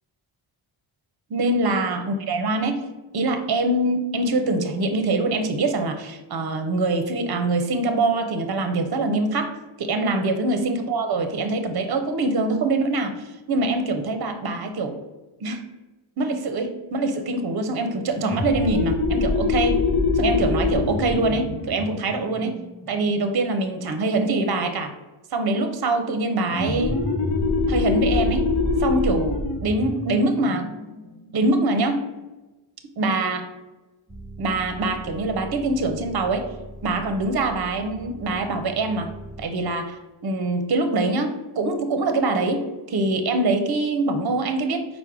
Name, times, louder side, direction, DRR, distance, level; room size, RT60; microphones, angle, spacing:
voice 1, 1.3-2.8 3.1-13.1 13.5-15.0 15.4-15.6 16.2-19.8 20.1-22.6 22.9-24.9 25.3-27.0 27.7-28.5 28.8-30.7 31.3-32.1 33.0-33.5 34.4-36.5 36.8-39.1 39.4-40.0 40.2-44.9, right 2 dB, 50° right, 7 dB, 0.7 m, -24 dB
sound 1, 18.1-23.4 26.5-31.8, left 3 dB, 50° left, 0.9 m, -24 dB
sound 2, 34.1-39.5, right 1 dB, 10° right, 0.4 m, -40 dB
4.6 x 2.1 x 4.6 m, 1.1 s
cardioid pair, 70°, 47 cm